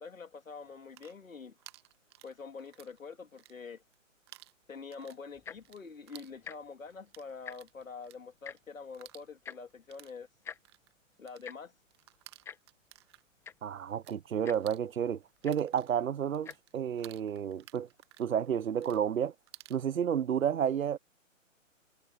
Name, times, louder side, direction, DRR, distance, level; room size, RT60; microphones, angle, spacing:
voice 1, 0.0-1.5 2.2-3.8 4.7-10.3 11.2-11.7, left 5 dB, 80° left, 3.1 m, -46 dB
sound 1, 0.7-3.0 3.3-4.0 4.3-14.2 14.5-19.8, right 16 dB, 20° right, 1.0 m, -56 dB
Tick-tock, 5.3-5.7 6.4-6.6 6.9-7.0 7.3-7.8 8.4-8.6 9.4-9.6 10.4-10.6 11.4-11.6 12.4-12.6 13.2-13.3 13.4-13.7 14.4-14.6 15.4-15.6 16.4-16.6 17.3-17.4, left 7 dB, 5° left, 1.3 m, -44 dB
voice 2, 13.6-17.9 18.2-19.3 19.7-21.0, right 8 dB, 80° right, 0.8 m, -31 dB
hypercardioid pair, 150°, 40 cm